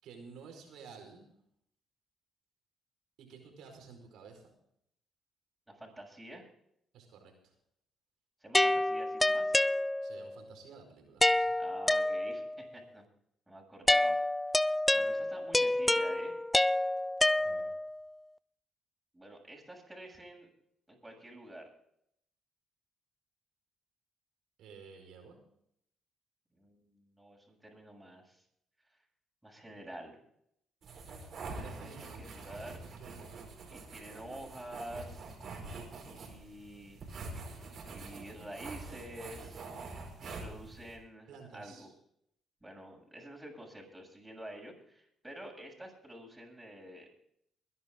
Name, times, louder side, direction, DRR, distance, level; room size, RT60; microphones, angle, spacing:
voice 1, 0.0-1.3 3.2-4.5 6.9-7.5 10.0-11.6 17.4-17.7 24.6-25.4 31.5-32.2 32.7-33.7 40.2-40.4 41.3-41.9, right 5 dB, 80° right, 4 dB, 5.0 m, -52 dB
voice 2, 5.7-6.5 8.4-9.6 11.6-13.0 13.5-14.2 14.9-16.3 19.1-20.5 20.9-21.7 26.5-28.4 29.4-30.2 31.6-32.8 33.7-35.3 36.0-37.0 37.9-39.7 40.2-41.9 42.6-47.1, right 1 dB, 10° right, -1 dB, 7.4 m, -48 dB
sound 1, 8.5-10.3 11.2-12.6 13.9-18.0, left 1 dB, 10° left, 0.5 m, -28 dB
sound 2, 30.8-41.0, right 3 dB, 60° right, 4.8 m, -45 dB
22.5 x 11.0 x 3.8 m, 0.72 s
cardioid pair, 80°, 0 cm